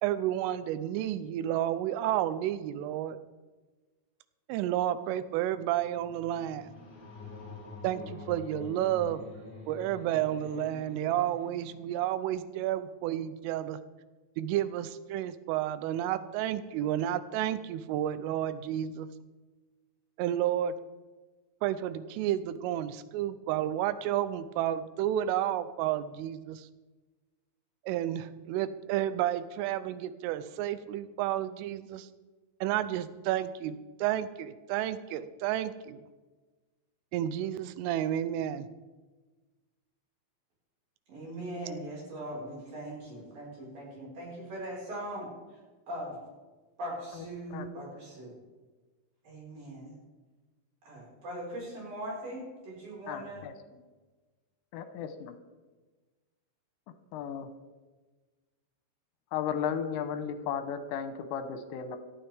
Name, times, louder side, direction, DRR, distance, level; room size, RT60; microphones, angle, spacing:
voice 1, 0.0-3.2 4.5-6.7 7.8-9.2 9.7-13.8 14.4-19.1 20.2-20.7 21.6-26.7 27.9-32.1 32.6-36.0 37.1-38.7, right 12 dB, 90° right, 14 dB, 3.2 m, -31 dB
sound 1, 5.4-12.8, left 4 dB, 25° left, 2.7 m, -47 dB
voice 2, 41.1-45.6 45.9-46.2 46.8-48.3 49.2-50.0 50.8-53.4, right 1 dB, 45° right, -4 dB, 6.4 m, -40 dB
voice 3, 53.1-53.5 54.7-55.3 57.1-57.5 59.3-62.0, left 8 dB, 85° left, 9 dB, 3.5 m, -34 dB
17.0 x 13.5 x 3.5 m, 1.3 s
omnidirectional pair, 5.6 m